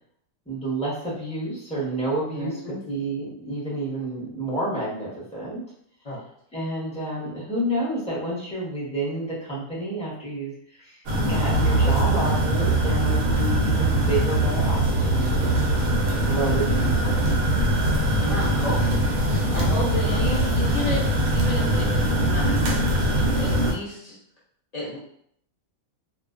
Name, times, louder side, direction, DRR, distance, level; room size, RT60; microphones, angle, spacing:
voice 1, 0.5-5.6 6.5-17.5, right 1 dB, 5° left, -8 dB, 0.7 m, -30 dB
voice 2, 2.3-2.8 6.0-6.2 16.4-16.6 18.2-24.2 24.7-25.0, left 1 dB, 70° left, -8 dB, 0.3 m, -32 dB
sound 1, 11.1-23.7, right 1 dB, 80° right, 1.0 m, -22 dB
2.5 x 2.1 x 2.4 m, 0.67 s
omnidirectional pair, 1.5 m